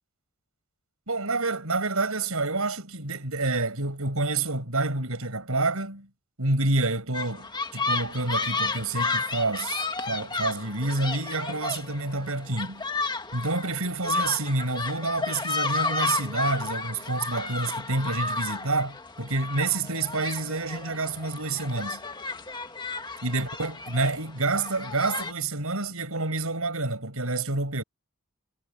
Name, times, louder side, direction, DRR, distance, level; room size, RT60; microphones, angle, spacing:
voice 1, 1.1-6.1 6.4-12.9 13.3-22.0 23.2-27.8, right 2 dB, 80° right, 6.1 m, -28 dB
sound 1, 7.1-25.3, left 3 dB, 20° left, 1.7 m, -32 dB
head